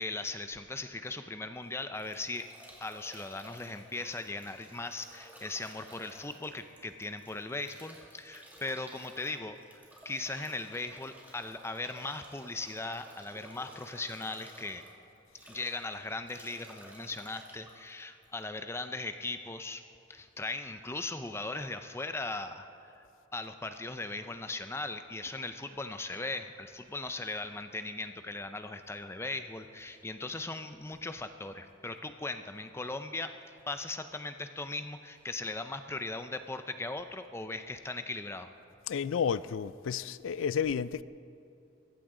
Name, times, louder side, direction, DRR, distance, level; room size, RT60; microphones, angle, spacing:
voice 1, 0.0-2.5 2.8-9.6 10.0-14.8 15.4-19.8 20.1-22.7 23.0-23.1 23.3-33.3 33.7-38.5, left 2 dB, 15° left, 0.5 m, -38 dB
Bathtub (filling or washing) / Drip / Trickle dribble, 1.5-18.8, right 1 dB, 10° right, 2.4 m, -54 dB
voice 2, 38.9-41.0, left 7 dB, 80° left, 0.4 m, -31 dB
23.0 x 15.0 x 3.8 m
head